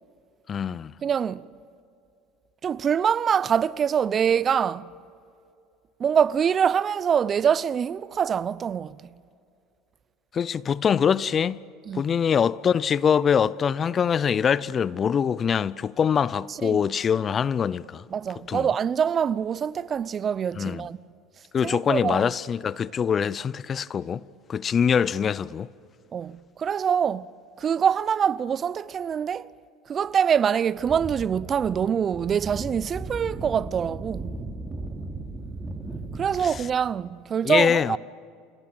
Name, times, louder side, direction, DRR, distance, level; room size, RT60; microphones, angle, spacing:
voice 1, 0.5-0.9 10.3-11.6 11.9-18.0 18.5-18.7 20.6-20.9 21.5-24.2 24.5-25.7 36.4-36.5 37.4-38.0, left 7 dB, 35° left, 0.6 m, -24 dB
voice 2, 1.0-1.5 2.6-4.9 6.0-8.9 11.9-12.0 16.6-16.8 18.1-21.0 21.6-22.2 26.1-27.3 27.6-29.5 29.9-34.4 36.2-38.0, right 7 dB, 40° right, 0.7 m, -24 dB
sound 1, 30.8-36.8, right 2 dB, 20° right, 4.3 m, -36 dB
28.0 x 27.5 x 7.7 m
hypercardioid pair, 85°, 0 cm